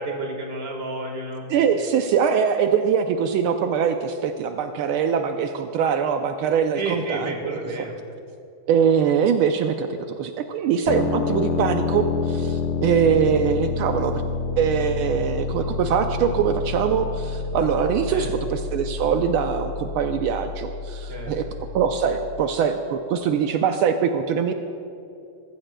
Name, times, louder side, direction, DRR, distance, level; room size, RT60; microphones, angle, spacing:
voice 1, 0.0-1.4 6.7-8.0 18.1-18.3 21.1-21.5, right 2 dB, 30° right, 1 dB, 1.7 m, -31 dB
voice 2, 1.5-7.9 8.7-14.2 14.6-21.4 21.7-24.5, right 7 dB, 80° right, 6 dB, 1.4 m, -23 dB
sound 1, 10.9-22.5, left 4 dB, 80° left, 1.7 m, -28 dB
21.5 x 15.0 x 2.2 m, 2.7 s
omnidirectional pair, 2.4 m